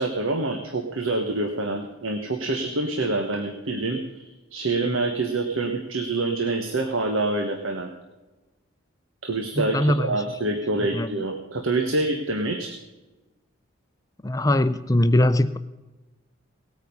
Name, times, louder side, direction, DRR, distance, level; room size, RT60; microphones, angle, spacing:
voice 1, 0.0-7.9 9.2-12.7, right 2 dB, 80° right, 5 dB, 1.3 m, -26 dB
voice 2, 9.6-10.2 10.8-11.1 14.2-15.6, left 1 dB, 15° left, 12 dB, 0.5 m, -21 dB
18.5 x 9.2 x 5.4 m, 1.1 s
head